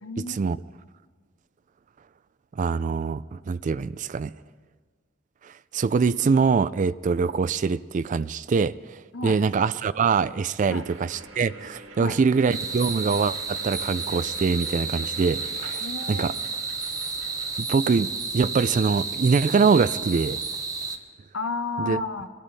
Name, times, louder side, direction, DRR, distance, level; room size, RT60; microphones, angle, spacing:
voice 1, 0.0-0.5 9.1-9.4 10.7-10.9 12.0-12.2 15.8-16.3 21.3-22.3, left 3 dB, 80° left, 1.1 m, -32 dB
voice 2, 2.6-4.3 5.7-9.0 9.2-15.8 16.1-16.3 17.6-20.4 21.9-22.0, right 5 dB, 40° right, 0.3 m, -23 dB
sound 1, 10.6-17.6, right 2 dB, 90° right, 1.8 m, -46 dB
sound 2, 12.5-21.0, right 4 dB, 20° right, 0.9 m, -31 dB
22.0 x 13.5 x 4.1 m
head